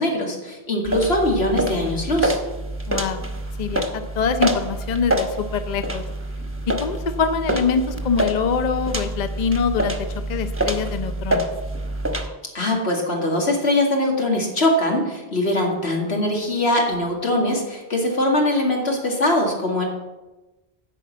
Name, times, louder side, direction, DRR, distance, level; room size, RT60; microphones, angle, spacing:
voice 1, 0.0-2.4 12.5-19.8, left 1 dB, 90° left, 0 dB, 2.4 m, -22 dB
sound 1, 0.8-12.3, right 1 dB, 15° right, 1.0 m, -26 dB
voice 2, 2.9-3.2 3.6-6.1 6.7-10.0 10.3-11.5, left 5 dB, 50° left, 9 dB, 0.7 m, -24 dB
10.5 x 5.3 x 8.3 m, 1.1 s
omnidirectional pair, 1.1 m